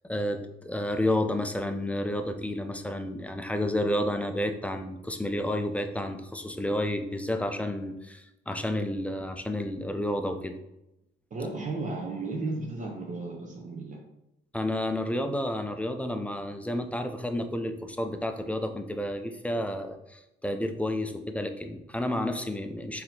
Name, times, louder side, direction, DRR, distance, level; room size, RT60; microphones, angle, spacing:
voice 1, 0.1-10.5 14.5-23.0, left 1 dB, 5° left, 6 dB, 0.4 m, -31 dB
voice 2, 11.3-14.0, right 3 dB, 40° right, 0 dB, 0.7 m, -34 dB
4.2 x 2.8 x 2.7 m, 0.87 s
cardioid pair, 90°, 20 cm